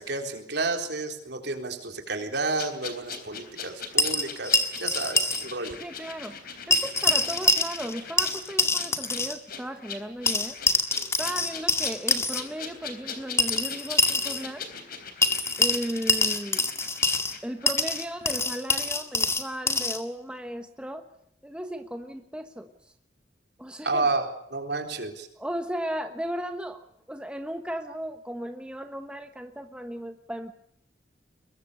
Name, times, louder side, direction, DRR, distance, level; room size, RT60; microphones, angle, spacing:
voice 1, 0.0-5.8 23.8-25.3, right 3 dB, 60° right, 4 dB, 4.0 m, -31 dB
sound 1, 2.6-18.1 18.3-18.4, left 6 dB, 50° left, 3.6 m, -41 dB
sound 2, 4.0-5.5 5.7-5.8 6.7-9.4 10.3-12.4 13.4-14.4 15.2-17.4 17.7-20.0, left 3 dB, 15° left, 2.1 m, -25 dB
voice 2, 5.8-6.4 6.7-10.6 11.2-14.6 15.6-16.7 17.4-21.1 21.4-22.9 23.6-24.1 25.4-30.5, equal, 5° right, 6 dB, 1.3 m, -35 dB
23.0 x 22.5 x 6.9 m, 0.71 s
head